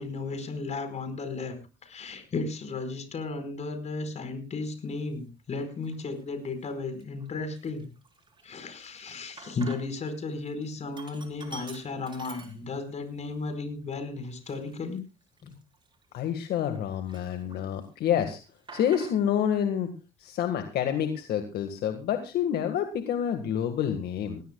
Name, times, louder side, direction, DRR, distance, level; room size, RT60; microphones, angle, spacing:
voice 1, 0.0-1.6 1.8-7.9 8.4-15.0 15.4-15.5, left 3 dB, 40° left, 9 dB, 4.8 m, -34 dB
Sink (filling or washing), 4.9-5.0 5.7-6.2 6.6-6.7 7.0-10.1 10.4-13.0 13.4-13.5 14.2-16.8 17.1-17.9 18.1-19.5, right 4 dB, 30° right, 4.3 m, -49 dB
voice 2, 16.1-18.4 18.7-19.9 20.2-24.4, left 9 dB, 70° left, 7 dB, 1.8 m, -28 dB
20.0 x 17.0 x 2.3 m, 0.30 s
cardioid pair, 110°, 17 cm